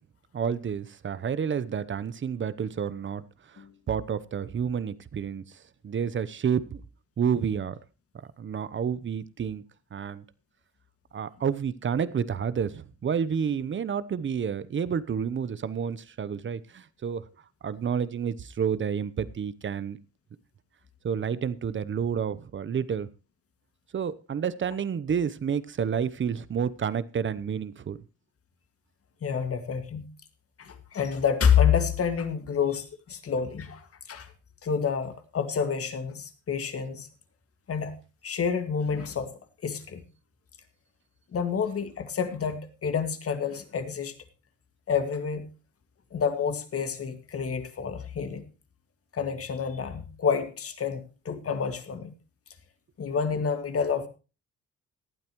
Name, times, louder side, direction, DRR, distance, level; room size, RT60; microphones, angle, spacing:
voice 1, 0.3-3.2 3.5-5.4 5.8-6.8 7.2-7.8 8.4-9.6 9.9-10.2 11.1-17.2 17.6-20.0 21.0-23.1 23.9-28.0, right 7 dB, 40° right, 17 dB, 0.9 m, -29 dB
voice 2, 29.2-30.1 30.6-34.3 34.6-37.1 37.7-37.9 38.2-39.3 39.6-40.0 41.3-44.1 44.9-45.5 46.1-48.4 49.1-52.1 53.0-54.1, left 7 dB, 50° left, 8 dB, 2.1 m, -28 dB
18.0 x 12.0 x 3.1 m, 0.32 s
cardioid pair, 90°, 30 cm